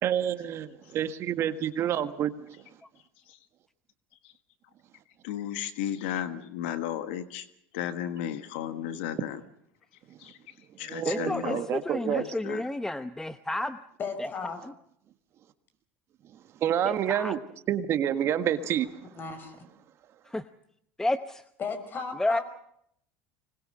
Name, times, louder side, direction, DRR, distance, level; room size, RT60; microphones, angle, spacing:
voice 1, 0.0-2.5 10.9-12.2 16.6-17.4 17.7-18.9, right 10 dB, 50° right, 10 dB, 1.6 m, -28 dB
voice 2, 5.2-7.5 7.7-9.4 10.2-11.6 12.0-12.6, left 10 dB, 80° left, 10 dB, 1.5 m, -34 dB
voice 3, 11.0-13.8 14.2-14.3 16.8-17.3 20.2-20.4 21.0-21.4 22.2-22.4, left 1 dB, 10° left, 11 dB, 0.8 m, -31 dB
voice 4, 14.0-14.6 19.1-19.6 21.6-22.4, left 5 dB, 35° left, 8 dB, 5.9 m, -35 dB
25.0 x 20.5 x 6.6 m, 0.72 s
supercardioid pair, 95°, 6 cm